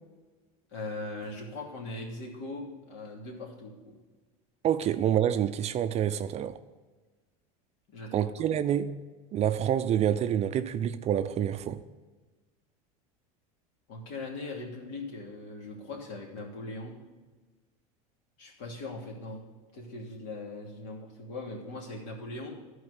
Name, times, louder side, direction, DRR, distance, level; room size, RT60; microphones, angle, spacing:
voice 1, 0.7-3.9 7.9-8.3 13.9-16.9 18.4-19.4 19.7-22.6, left 2 dB, 65° left, 2.8 m, -40 dB
voice 2, 4.6-6.6 8.1-9.0 9.3-11.8, right 10 dB, 35° right, 0.5 m, -27 dB
12.0 x 4.8 x 8.1 m
supercardioid pair, 105°, 19 cm